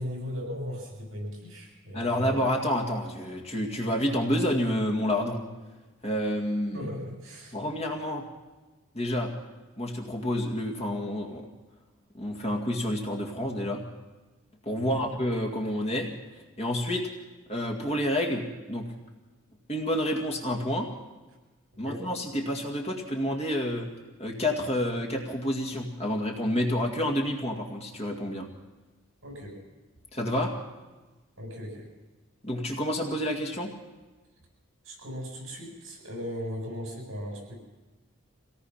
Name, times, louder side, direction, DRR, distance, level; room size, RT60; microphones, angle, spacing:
voice 1, 0.0-2.3 6.7-7.6 14.8-15.0 21.8-22.1 29.2-29.6 31.4-31.9 34.8-37.6, equal, 70° right, 0 dB, 7.7 m, -37 dB
voice 2, 1.9-5.4 6.0-6.8 7.5-8.2 8.9-9.3 9.8-11.5 12.1-13.8 14.7-16.1 16.6-17.1 17.5-18.8 19.7-20.9 21.8-23.9 24.2-28.5 30.1-30.5 32.4-33.7, left 1 dB, 30° left, 1 dB, 2.1 m, -29 dB
25.0 x 18.0 x 5.7 m, 1.2 s
head